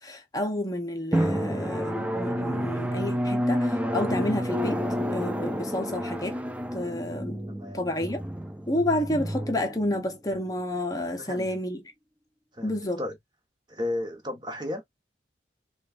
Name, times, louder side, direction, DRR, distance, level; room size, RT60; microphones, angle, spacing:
voice 1, 0.0-4.8 5.1-6.4 6.7-7.4 7.7-8.2 8.7-11.8 12.6-13.0, left 1 dB, 20° left, 0.7 m, -30 dB
Drum, 1.1-10.4, equal, 5° right, 0.3 m, -29 dB
voice 2, 7.5-8.0 11.2-11.5 12.5-13.2 13.7-14.8, left 1 dB, 25° right, 1.1 m, -34 dB
6.3 x 2.3 x 2.5 m
head